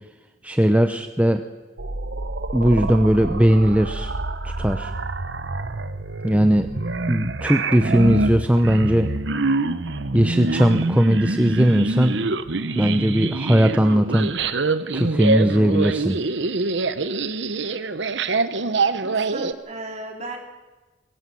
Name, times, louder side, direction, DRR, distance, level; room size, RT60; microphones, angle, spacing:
voice 1, 0.4-1.4 2.5-4.1 4.6-4.9 6.2-6.7 7.1-9.1 10.1-12.2 12.8-14.3 14.9-16.2, equal, 10° right, 7 dB, 0.8 m, -18 dB
sound 1, 1.8-19.5, right 3 dB, 70° right, 1.0 m, -25 dB
voice 2, 19.0-20.4, right 2 dB, 40° right, 1 dB, 4.3 m, -35 dB
21.5 x 17.5 x 7.7 m, 1.2 s
head